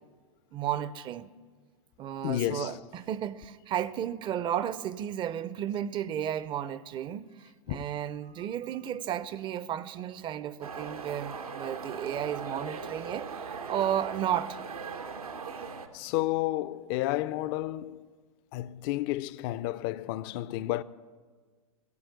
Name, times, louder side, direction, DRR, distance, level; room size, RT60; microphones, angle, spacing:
voice 1, 0.5-1.3 2.0-14.6, right 10 dB, 25° right, 0.5 m, -33 dB
voice 2, 2.2-2.8 7.7-7.8 15.9-18.0 18.5-20.8, left 15 dB, 45° left, 0.4 m, -31 dB
sound 1, 10.6-15.9, right 5 dB, 90° right, 1.1 m, -39 dB
16.5 x 7.7 x 8.2 m
hypercardioid pair, 105°, 18 cm